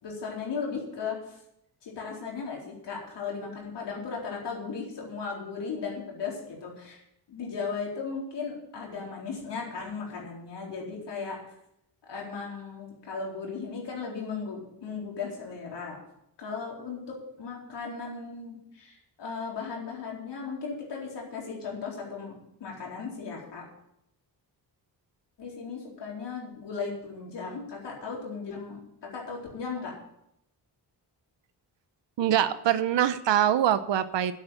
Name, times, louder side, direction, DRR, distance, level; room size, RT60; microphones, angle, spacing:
voice 1, 0.0-1.4 1.8-7.0 7.3-11.4 12.1-16.0 16.4-23.6 25.4-29.9, left 5 dB, 75° left, -2 dB, 4.2 m, -36 dB
voice 2, 32.2-34.3, right 10 dB, 90° right, 12 dB, 0.9 m, -24 dB
9.6 x 8.9 x 8.1 m, 0.77 s
wide cardioid pair, 130°, 42 cm